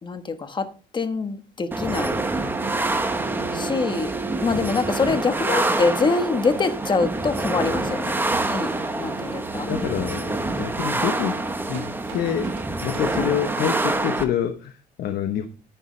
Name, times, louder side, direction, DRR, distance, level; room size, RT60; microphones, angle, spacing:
voice 1, 0.0-0.7 0.9-2.2 3.5-4.1 4.4-8.1 8.4-8.7 9.0-9.7 13.1-13.3, left 4 dB, 25° left, 1.3 m, -24 dB
sound 1, 1.7-14.2, right 2 dB, 10° right, 1.0 m, -26 dB
sound 2, 2.0-13.1, right 7 dB, 85° right, 1.7 m, -41 dB
voice 2, 8.7-9.0 9.6-15.5, left 9 dB, 65° left, 1.1 m, -27 dB
10.5 x 9.1 x 3.3 m
cardioid pair, 110°, 17 cm